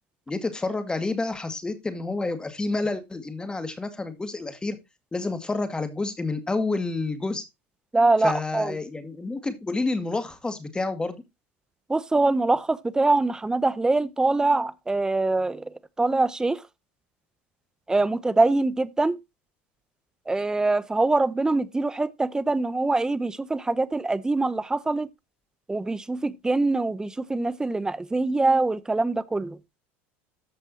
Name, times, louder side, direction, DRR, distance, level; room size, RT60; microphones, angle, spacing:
voice 1, 0.3-4.8 5.1-7.5 8.2-11.2, left 3 dB, 15° left, 2.1 m, -29 dB
voice 2, 7.9-8.8 11.9-16.6 17.9-19.2 20.3-25.1 25.7-29.6, right 2 dB, 10° right, 0.7 m, -24 dB
14.0 x 5.3 x 2.8 m
supercardioid pair, 105°, 6 cm